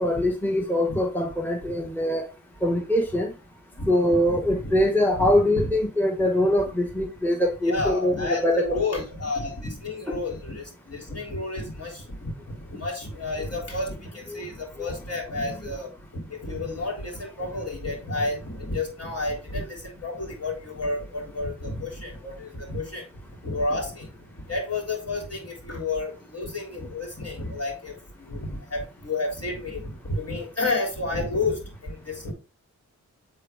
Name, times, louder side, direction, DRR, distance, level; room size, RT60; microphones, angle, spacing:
voice 1, 0.0-2.2 2.6-3.3 3.9-8.6 10.1-10.2 14.3-14.4, left 1 dB, 5° left, 2 dB, 1.2 m, -23 dB
voice 2, 4.3-4.8 5.2-5.3 5.5-5.7 7.6-12.3 12.7-23.0 23.4-24.1 24.5-27.9 28.2-32.3, left 2 dB, 55° left, 0 dB, 3.2 m, -31 dB
8.0 x 3.5 x 3.5 m, 0.32 s
cardioid pair, 55°, 30 cm